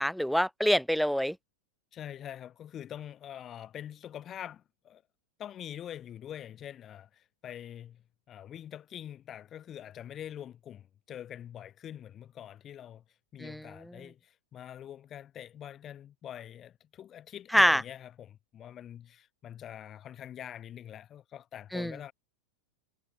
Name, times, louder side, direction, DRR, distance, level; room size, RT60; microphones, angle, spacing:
voice 1, 0.0-1.4 13.4-13.6 17.5-17.8 21.7-21.9, equal, ahead, 0.6 m, -25 dB
voice 2, 1.9-5.0 5.4-13.0 13.3-22.1, left 10 dB, 30° left, 7.8 m, -45 dB
figure-of-eight pair, 90°, 0 cm